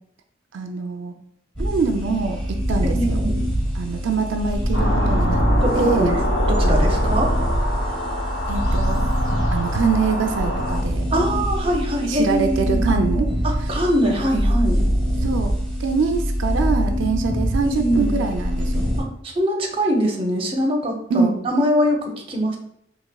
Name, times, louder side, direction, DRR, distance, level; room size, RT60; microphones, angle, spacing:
voice 1, 0.5-1.1 1.6-3.2 3.7-5.4 5.7-6.1 8.5-9.1 9.5-11.0 12.1-13.3 13.7-13.8 15.2-15.5 15.8-18.9 21.1-21.4, right 4 dB, 80° right, 5 dB, 0.4 m, -24 dB
sound 1, 1.6-19.0, equal, 5° left, 0.9 m, -23 dB
voice 2, 2.8-3.4 5.6-6.2 6.5-7.3 11.1-12.8 13.4-14.8 17.6-18.1 19.0-19.1 19.4-22.6, equal, 30° right, 1 dB, 0.6 m, -22 dB
sound 2, 4.7-10.8, equal, 60° left, 1.0 m, -25 dB
3.9 x 2.8 x 2.2 m, 0.71 s
head